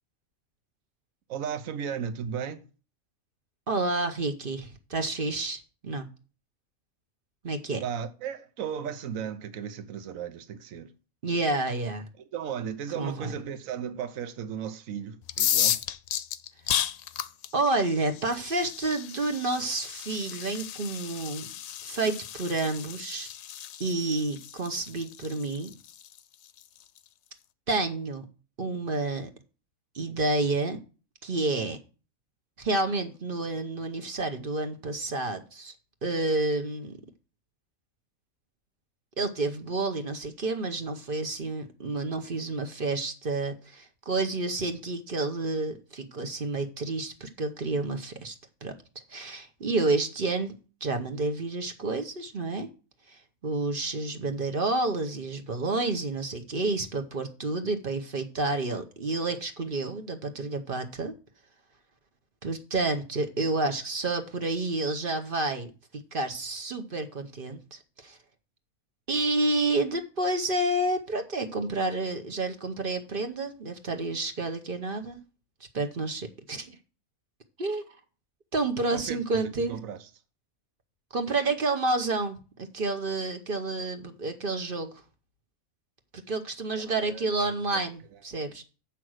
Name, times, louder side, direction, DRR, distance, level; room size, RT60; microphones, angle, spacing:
voice 1, 1.3-2.7 7.8-10.9 12.3-15.8 78.9-80.1 86.8-87.8 88.3-88.4, right 8 dB, 75° right, 1.2 m, -36 dB
voice 2, 3.7-6.1 7.4-7.8 11.2-12.1 12.9-13.3 17.5-21.5 21.8-23.3 23.8-25.7 27.7-28.2 28.6-29.3 29.9-30.8 31.2-31.8 32.6-35.7 36.0-37.0 39.2-48.7 49.1-50.5 50.8-52.7 53.1-61.1 62.4-68.2 69.1-75.2 75.7-76.8 77.6-78.0 78.5-79.8 81.1-84.9 86.1-88.6, right 2 dB, 45° right, 1.0 m, -30 dB
sound 1, 15.2-27.0, left 11 dB, 75° left, 1.0 m, -33 dB
7.6 x 5.8 x 6.3 m
omnidirectional pair, 1.5 m